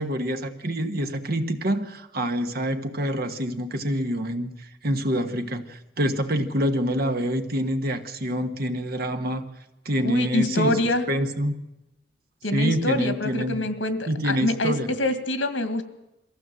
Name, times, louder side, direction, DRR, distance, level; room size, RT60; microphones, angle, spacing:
voice 1, 0.0-9.4 9.8-10.8 11.1-11.5 12.5-13.6 14.1-14.9, equal, 55° right, 7 dB, 1.4 m, -26 dB
voice 2, 10.0-11.0 12.4-15.8, left 2 dB, 80° left, 9 dB, 1.9 m, -25 dB
22.5 x 15.5 x 7.7 m, 0.95 s
head